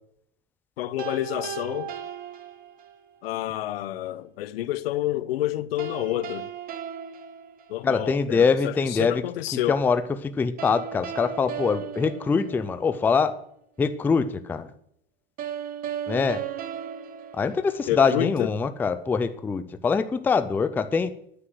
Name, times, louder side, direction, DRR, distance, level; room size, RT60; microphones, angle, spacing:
voice 1, 0.8-1.9 3.2-6.5 7.7-9.8 17.9-18.5, left 14 dB, 75° left, 0.8 m, -29 dB
sound 1, 1.0-3.1 5.8-8.2 10.6-13.1 15.4-18.2, right 8 dB, 30° right, 1.0 m, -36 dB
voice 2, 7.8-9.2 9.7-10.0 10.4-13.3 13.8-14.7 16.1-16.4 17.3-21.1, left 5 dB, 5° left, 0.4 m, -23 dB
9.8 x 7.6 x 7.9 m
supercardioid pair, 135°, 30 cm